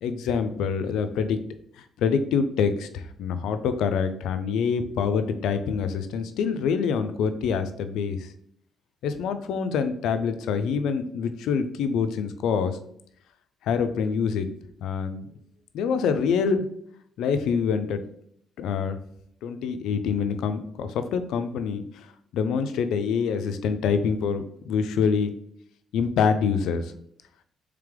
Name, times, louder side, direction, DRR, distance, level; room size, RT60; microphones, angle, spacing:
voice 1, 0.0-1.4 2.0-8.3 9.0-12.8 13.6-14.5 14.8-15.3 15.7-16.6 17.2-18.0 18.6-19.0 19.4-22.1 22.3-25.3 25.9-26.9, left 6 dB, 85° left, 9 dB, 0.4 m, -26 dB
3.3 x 3.3 x 3.6 m, 0.68 s
cardioid pair, 90°, 0 cm